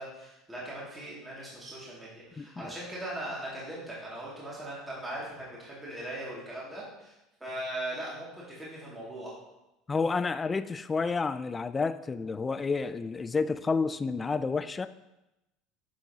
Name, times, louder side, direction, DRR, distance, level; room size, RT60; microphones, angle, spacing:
voice 1, 0.0-7.1 7.4-9.3, right 1 dB, 15° right, -7 dB, 2.3 m, -39 dB
voice 2, 2.4-2.7 9.9-14.9, left 4 dB, 25° left, 13 dB, 0.3 m, -30 dB
8.3 x 4.5 x 2.9 m, 0.94 s
supercardioid pair, 90°, 0 cm